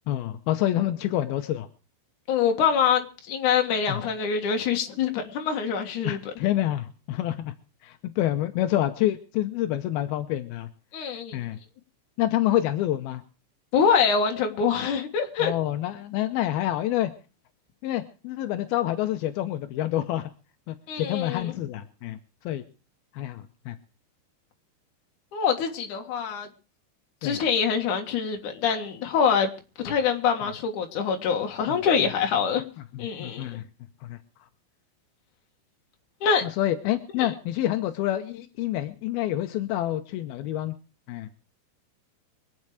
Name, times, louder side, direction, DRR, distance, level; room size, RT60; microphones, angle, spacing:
voice 1, 0.1-1.7 3.9-4.0 6.1-7.5 7.8-10.7 11.3-11.6 12.2-13.2 15.4-17.1 17.8-20.3 20.7-22.2 22.4-22.6 23.1-23.8 27.2-27.4 31.7-31.8 32.9-33.6 34.0-34.2 36.4-40.7 41.1-41.3, left 13 dB, 80° left, 2.2 m, -27 dB
voice 2, 2.3-6.2 10.9-11.4 13.7-15.5 20.9-21.5 25.3-26.5 27.2-29.5 29.8-32.6 33.0-33.6 36.2-36.4 37.2-37.3, left 6 dB, 55° left, 2.6 m, -25 dB
24.0 x 8.6 x 4.9 m
omnidirectional pair, 5.4 m